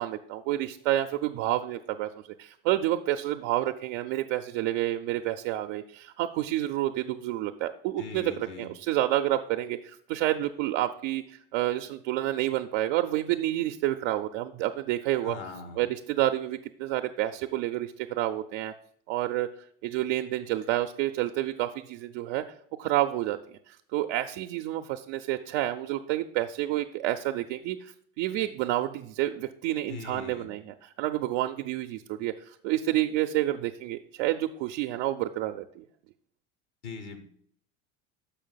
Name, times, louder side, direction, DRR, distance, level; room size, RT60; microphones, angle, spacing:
voice 1, 0.0-2.1 2.4-15.3 15.8-18.7 19.1-19.5 19.8-22.4 22.8-35.8, right 14 dB, 65° right, 5 dB, 0.6 m, -29 dB
voice 2, 8.0-8.7 15.2-15.8 29.9-30.5 36.8-37.2, left 5 dB, 75° left, 8 dB, 1.5 m, -41 dB
6.9 x 5.1 x 5.6 m, 0.64 s
hypercardioid pair, 80°, 35 cm